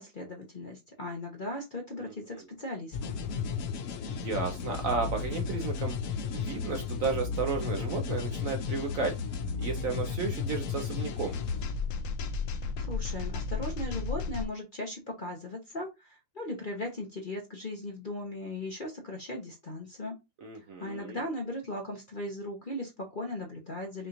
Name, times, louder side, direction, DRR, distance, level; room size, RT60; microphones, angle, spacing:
voice 1, 0.0-3.2 12.8-20.1 20.8-24.1, left 1 dB, 35° left, 1 dB, 0.8 m, -38 dB
sound 1, 2.9-14.5, left 5 dB, 70° left, 0.7 m, -33 dB
voice 2, 4.1-6.0 6.3-9.1 9.6-11.4 20.4-21.2, right 4 dB, 60° right, 4 dB, 0.9 m, -33 dB
5.8 x 3.0 x 2.5 m, 0.23 s
omnidirectional pair, 2.0 m